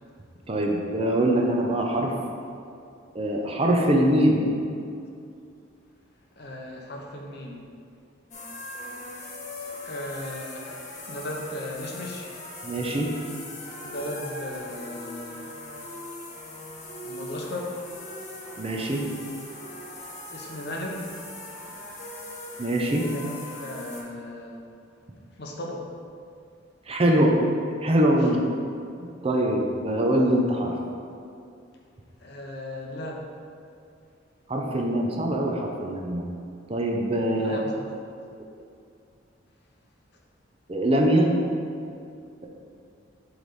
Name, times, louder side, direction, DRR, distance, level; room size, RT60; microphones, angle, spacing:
voice 1, 0.5-2.1 3.1-4.4 12.6-13.1 18.6-19.0 22.6-23.1 26.9-27.3 27.8-28.4 29.0-30.7 34.5-36.2 36.7-37.6 40.7-41.3, right 1 dB, 30° right, 0 dB, 0.6 m, -23 dB
voice 2, 6.4-7.6 9.8-12.3 13.8-15.5 17.0-17.8 20.3-21.0 22.9-24.6 25.3-25.8 28.2-28.3 32.2-33.3 37.4-38.0, left 1 dB, 60° left, 0 dB, 0.9 m, -36 dB
sound 1, 8.3-24.0, left 2 dB, 40° left, 1.0 m, -40 dB
7.8 x 3.4 x 4.1 m, 2.5 s
head